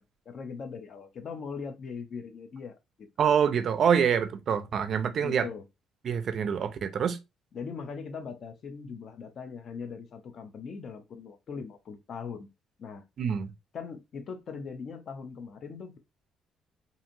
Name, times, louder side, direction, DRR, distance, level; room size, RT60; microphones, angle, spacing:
voice 1, 0.3-3.1 5.2-5.6 7.5-12.5 12.8-13.0 13.7-16.0, left 5 dB, 50° left, 0.5 m, -40 dB
voice 2, 3.2-5.5 6.0-7.2 13.2-13.5, right 7 dB, 50° right, 0.4 m, -26 dB
2.8 x 2.6 x 2.5 m
cardioid pair, 125°, 0 cm